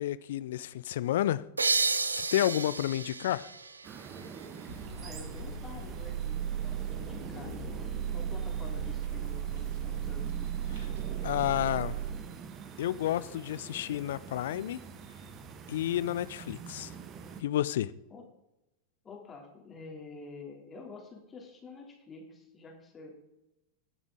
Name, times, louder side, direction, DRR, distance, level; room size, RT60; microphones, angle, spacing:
voice 1, 0.0-1.4 2.1-3.5 10.8-10.9 11.2-12.0 12.8-14.8 15.7-16.9 17.4-17.9, left 12 dB, 55° left, 0.4 m, -30 dB
sound 1, 1.6-5.0, right 4 dB, 75° right, 0.7 m, -32 dB
sound 2, 3.8-17.4, right 6 dB, 30° right, 1.0 m, -45 dB
sound 3, 4.7-12.1, right 8 dB, 55° right, 2.1 m, -36 dB
voice 2, 4.9-7.6 8.1-10.3 18.1-18.2 19.0-23.1, left 3 dB, 20° left, 2.8 m, -48 dB
20.5 x 7.2 x 3.7 m
figure-of-eight pair, 90°, 0 cm